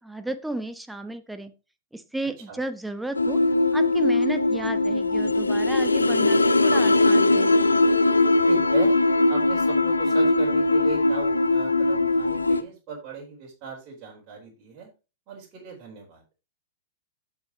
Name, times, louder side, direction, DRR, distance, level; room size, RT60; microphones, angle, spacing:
voice 1, 0.0-1.5 1.9-3.4 3.7-7.7, right 2 dB, 5° right, 10 dB, 0.9 m, -33 dB
sound 1, 3.1-12.6, left 2 dB, 85° left, 0.7 m, -20 dB
voice 2, 8.5-8.9 9.3-14.9 15.3-16.2, right 4 dB, 35° right, -2 dB, 4.3 m, -38 dB
15.5 x 5.5 x 3.0 m, 0.29 s
figure-of-eight pair, 100°, 0 cm